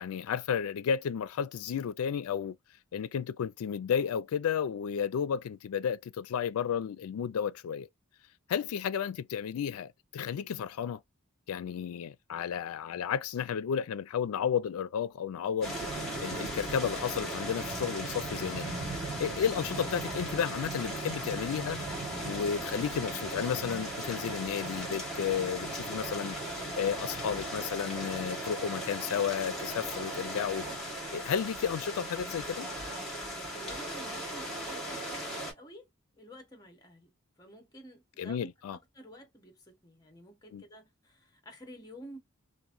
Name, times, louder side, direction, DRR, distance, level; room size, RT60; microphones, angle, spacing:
voice 1, 0.0-2.6 2.9-7.9 8.5-11.0 11.5-15.8 16.2-18.7 19.2-21.8 22.2-30.7 31.1-32.7 38.2-38.8 40.5-40.6, left 7 dB, 80° left, 0.3 m, -32 dB
sound 1, 15.6-35.5, right 1 dB, ahead, 1.4 m, -37 dB
voice 2, 33.5-35.9 36.2-37.1 37.4-38.5 38.9-42.2, right 1 dB, 15° left, 0.9 m, -50 dB
2.9 x 2.5 x 2.5 m
head